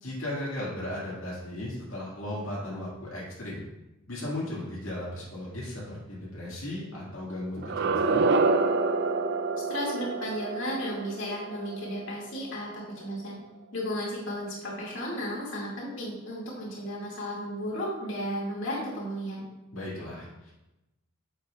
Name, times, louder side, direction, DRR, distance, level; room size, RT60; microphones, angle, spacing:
voice 1, 0.0-3.6 4.1-8.2 19.7-20.5, left 1 dB, 85° left, -7 dB, 2.1 m, -36 dB
sound 1, 7.6-12.5, right 3 dB, 55° right, 0.5 m, -27 dB
voice 2, 9.7-13.4 13.7-19.5, equal, 65° left, -5 dB, 2.4 m, -34 dB
8.4 x 7.3 x 2.5 m, 0.98 s
head